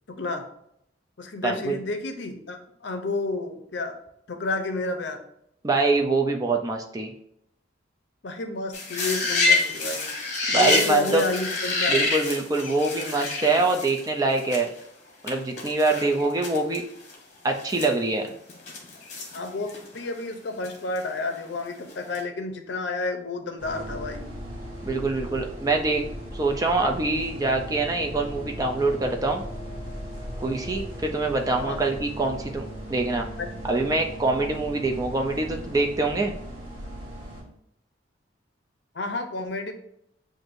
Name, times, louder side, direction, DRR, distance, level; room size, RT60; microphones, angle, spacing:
voice 1, 0.1-0.4 1.2-3.9 4.3-5.2 8.2-10.1 10.5-12.0 16.1-16.3 19.3-24.3 31.6-31.9 33.4-33.5 38.9-39.7, left 3 dB, 65° left, 6 dB, 0.6 m, -30 dB
voice 2, 1.4-1.8 5.6-7.1 10.5-11.2 11.9-14.7 15.2-16.8 17.4-18.3 24.8-26.0 26.3-29.4 30.4-33.3 33.7-36.3, right 3 dB, 20° right, 3 dB, 0.4 m, -24 dB
sound 1, 8.7-14.8 15.3-15.4 15.6-16.8 17.1-17.2 17.6-20.1 20.6-21.6 21.9-22.2, left 3 dB, 40° left, 1.0 m, -27 dB
sound 2, 23.6-37.4, equal, 45° right, 1.8 m, -37 dB
7.6 x 2.6 x 2.5 m, 0.75 s
head